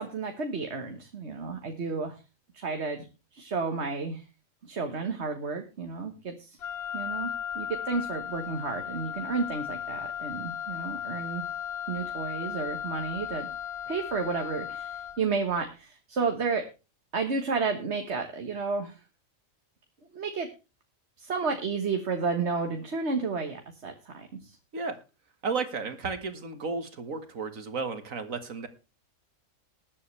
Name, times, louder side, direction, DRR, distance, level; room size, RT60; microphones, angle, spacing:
voice 1, 0.0-2.2 2.5-3.1 3.3-4.2 4.6-6.6 6.9-11.4 11.9-13.5 13.9-16.6 17.1-19.0 20.1-20.5 21.2-24.6, right 4 dB, 55° right, 5 dB, 1.6 m, -32 dB
Wind instrument woodwind instrument, 6.6-15.3, left 9 dB, 55° left, 1.1 m, -36 dB
voice 2, 25.4-28.7, right 4 dB, 75° right, 9 dB, 2.1 m, -33 dB
20.0 x 8.5 x 3.3 m, 0.30 s
omnidirectional pair, 1.4 m